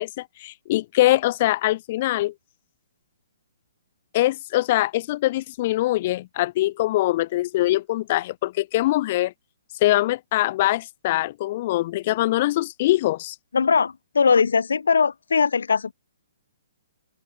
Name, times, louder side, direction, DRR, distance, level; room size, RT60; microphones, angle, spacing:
voice 1, 0.0-2.3 4.1-9.3 9.8-13.4, left 16 dB, 45° left, 1.8 m, -23 dB
voice 2, 13.5-15.9, left 5 dB, 80° left, 3.2 m, -20 dB
open air
hypercardioid pair, 135°, 0 cm